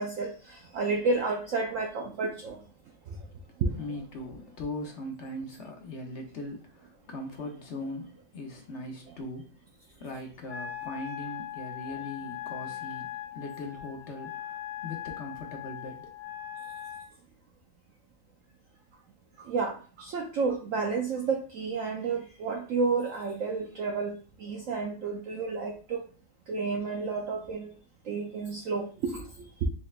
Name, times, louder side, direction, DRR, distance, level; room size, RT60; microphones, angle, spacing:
voice 1, 0.0-2.6 3.6-3.7 19.4-26.0 26.5-27.7 28.1-29.7, right 4 dB, 70° right, 0.7 m, -31 dB
voice 2, 3.8-9.6 9.9-16.1, left 1 dB, 55° left, 0.8 m, -40 dB
Wind instrument woodwind instrument, 10.5-17.1, left 11 dB, 75° left, 1.6 m, -40 dB
4.3 x 3.2 x 2.4 m
omnidirectional pair, 1.9 m